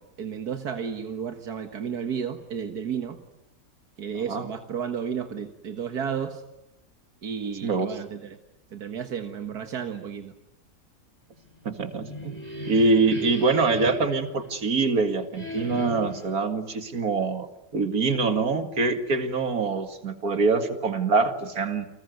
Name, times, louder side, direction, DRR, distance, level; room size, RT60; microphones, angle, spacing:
voice 1, 0.0-3.2 4.0-6.4 7.2-8.4 8.7-10.3, right 7 dB, 85° right, 6 dB, 2.0 m, -32 dB
voice 2, 11.6-12.4 12.7-17.5 17.7-21.9, right 3 dB, 70° right, 8 dB, 2.6 m, -24 dB
sound 1, 11.9-14.9 15.3-16.3, equal, 25° left, 5.6 m, -36 dB
29.5 x 21.0 x 9.5 m, 0.87 s
omnidirectional pair, 1.6 m